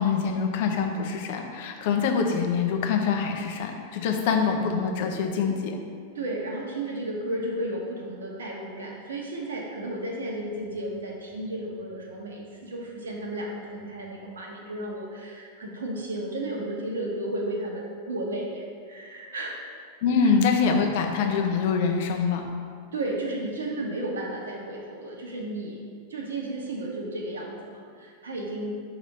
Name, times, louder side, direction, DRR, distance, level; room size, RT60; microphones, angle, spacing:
voice 1, 0.0-5.8 20.0-22.5, left 5 dB, 50° left, 3 dB, 0.6 m, -25 dB
voice 2, 6.1-19.6 20.2-20.3 22.9-25.8 26.1-28.8, right 1 dB, 70° right, -1 dB, 1.0 m, -33 dB
6.0 x 3.0 x 5.3 m, 2.1 s
figure-of-eight pair, 90°, 0 cm